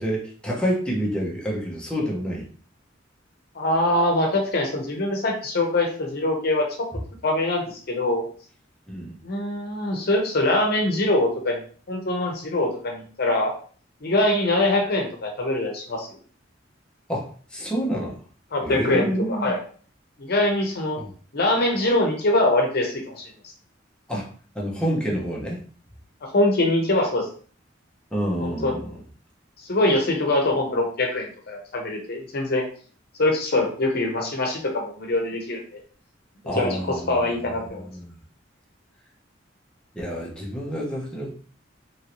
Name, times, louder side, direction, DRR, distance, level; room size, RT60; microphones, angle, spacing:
voice 1, 0.0-2.4 8.9-9.1 17.1-18.2 18.6-19.5 21.0-21.1 24.1-24.3 24.5-25.6 28.1-29.0 36.5-37.3 37.7-38.2 39.9-41.3, equal, 5° left, -4 dB, 0.7 m, -28 dB
voice 2, 3.5-6.7 7.2-8.3 9.2-11.6 11.9-13.5 14.0-16.1 18.5-19.6 20.2-21.0 21.3-23.3 26.3-27.3 28.4-28.8 29.7-32.7 33.2-35.8 36.4-37.9, left 1 dB, 55° left, 1 dB, 0.8 m, -23 dB
3.1 x 2.6 x 2.9 m, 0.44 s
head